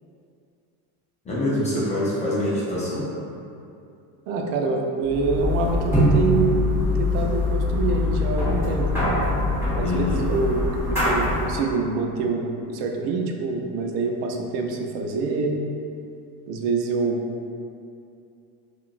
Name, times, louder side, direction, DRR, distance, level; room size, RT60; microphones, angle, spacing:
voice 1, 1.2-3.1 9.8-10.2, left 1 dB, 15° left, -8 dB, 0.3 m, -25 dB
voice 2, 4.3-6.6 7.0-8.9 9.8-15.6 16.5-17.2, right 3 dB, 90° right, 2 dB, 0.6 m, -25 dB
sound 1, 5.1-11.6, left 1 dB, 5° right, 1.2 m, -23 dB
3.7 x 2.4 x 2.4 m, 2.6 s
supercardioid pair, 135°, 46 cm